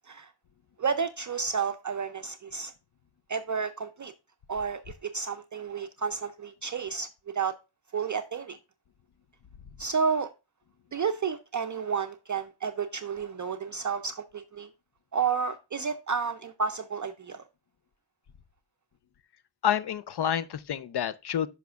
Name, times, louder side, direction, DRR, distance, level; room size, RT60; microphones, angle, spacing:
voice 1, 0.8-2.7 3.3-4.1 4.5-7.1 7.3-7.5 7.9-8.6 9.8-10.3 10.9-14.7 15.1-17.4, right 6 dB, 40° right, 0.5 m, -31 dB
voice 2, 19.6-21.5, left 9 dB, 60° left, 0.6 m, -28 dB
9.2 x 5.8 x 2.3 m
wide cardioid pair, 75°, 46 cm